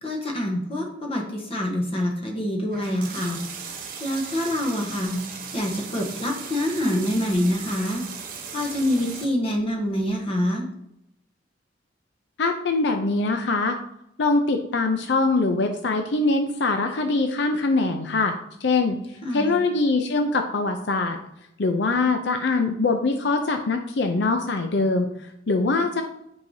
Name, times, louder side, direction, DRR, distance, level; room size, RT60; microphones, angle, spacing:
voice 1, 0.0-3.4 4.0-5.2 5.5-8.0 8.5-10.7 19.2-19.6, left 1 dB, 30° left, 1 dB, 1.1 m, -26 dB
sound 1, 2.7-9.2, right 6 dB, 45° right, 1.1 m, -37 dB
voice 2, 12.4-13.8 14.2-21.2 21.6-26.0, left 3 dB, 65° left, 5 dB, 0.5 m, -23 dB
9.2 x 4.8 x 2.7 m, 0.80 s
head